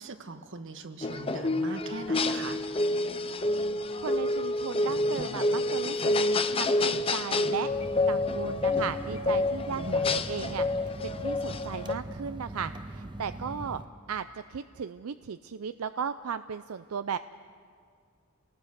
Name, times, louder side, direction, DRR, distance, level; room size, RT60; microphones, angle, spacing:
voice 1, 0.0-2.6 9.7-10.2, right 3 dB, 65° right, 8 dB, 1.3 m, -40 dB
sound 1, 1.0-11.9, left 2 dB, 25° left, 0.7 m, -28 dB
voice 2, 4.0-6.2 6.5-7.7 8.1-13.8 14.1-17.2, right 7 dB, 85° right, 12 dB, 0.5 m, -36 dB
sound 2, 7.7-13.8, right 1 dB, 20° right, 0.8 m, -41 dB
30.0 x 19.5 x 6.5 m, 2.1 s
head